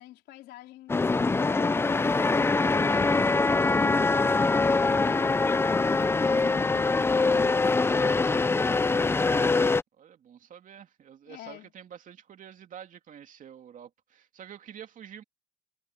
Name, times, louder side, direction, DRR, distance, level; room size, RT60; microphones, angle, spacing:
voice 1, 0.0-2.4 5.9-8.6 11.3-11.7, left 15 dB, 80° left, 3.8 m, -46 dB
sound 1, 0.9-9.8, left 3 dB, 15° left, 0.5 m, -23 dB
voice 2, 10.0-15.2, right 9 dB, 50° right, 2.6 m, -48 dB
cardioid pair, 110°, 17 cm